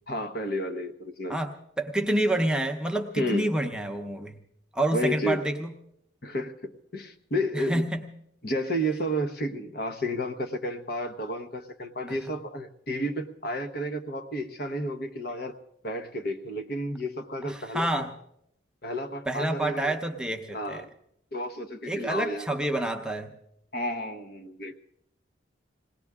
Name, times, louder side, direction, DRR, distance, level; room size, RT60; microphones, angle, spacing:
voice 1, 0.1-1.4 3.2-3.5 4.9-5.5 6.2-7.8 8.4-15.6 15.8-18.0 18.8-19.9 20.5-20.9 21.3-22.5 23.7-24.8, equal, 50° left, 8 dB, 1.0 m, -31 dB
voice 2, 1.3-4.4 4.7-5.7 7.5-8.0 12.1-12.2 17.4-18.1 19.3-20.8 21.9-23.3, right 1 dB, 5° right, 3 dB, 0.8 m, -28 dB
21.0 x 17.5 x 3.6 m, 0.74 s
head